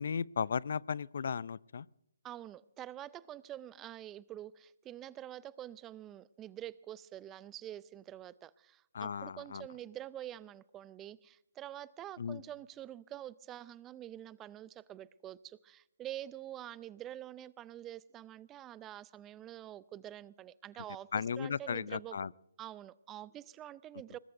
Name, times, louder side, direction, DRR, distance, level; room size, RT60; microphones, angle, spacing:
voice 1, 0.0-1.9 8.9-9.7 12.2-12.4 21.1-22.3, left 6 dB, 60° left, 23 dB, 0.4 m, -35 dB
voice 2, 2.2-21.1 21.4-22.2 22.6-24.2, right 12 dB, 15° right, 19 dB, 0.4 m, -47 dB
23.0 x 20.0 x 2.6 m, 0.83 s
hypercardioid pair, 150°, 0 cm